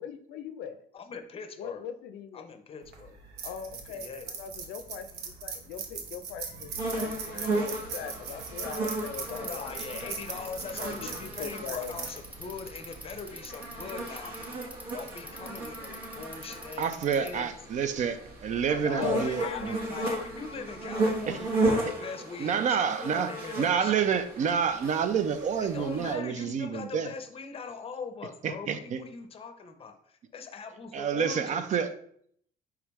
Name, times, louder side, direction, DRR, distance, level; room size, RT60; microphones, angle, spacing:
voice 1, 0.0-0.9 1.6-2.5 3.4-10.2 10.8-11.1 11.4-12.0 18.9-20.3, left 8 dB, 80° left, 10 dB, 0.4 m, -40 dB
voice 2, 0.9-1.9 2.3-3.2 3.9-4.3 9.4-14.3 14.9-17.5 18.7-24.1 25.6-31.6, left 5 dB, 35° left, 7 dB, 0.6 m, -41 dB
sound 1, 2.8-13.3, right 5 dB, 75° right, 0.8 m, -41 dB
sound 2, 6.8-26.1, right 2 dB, 60° right, 1.1 m, -35 dB
Bicycle, 8.7-17.5, right 1 dB, 10° right, 0.6 m, -46 dB
voice 3, 16.8-19.8 21.3-21.4 22.4-23.3 23.6-27.1 28.4-29.0 30.9-31.9, right 7 dB, 45° right, 11 dB, 0.4 m, -28 dB
4.7 x 3.3 x 3.0 m, 0.65 s
cardioid pair, 110°, 17 cm